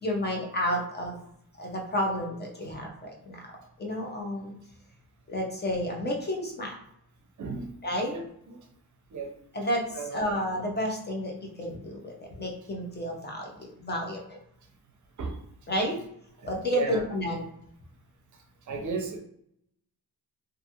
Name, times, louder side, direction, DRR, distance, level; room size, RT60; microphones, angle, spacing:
voice 1, 0.0-1.2 1.6-3.5 3.8-4.6 5.3-6.7 7.8-8.1 9.5-14.4 15.7-16.0 16.5-17.5, equal, 30° left, 0 dB, 0.5 m, -31 dB
voice 2, 7.4-7.7 8.1-8.6 9.1-9.3 9.9-10.2 15.2-15.4 16.7-17.1 18.7-19.2, right 4 dB, 55° right, 3 dB, 0.5 m, -34 dB
2.5 x 2.3 x 2.7 m, 0.70 s
wide cardioid pair, 135°, 37 cm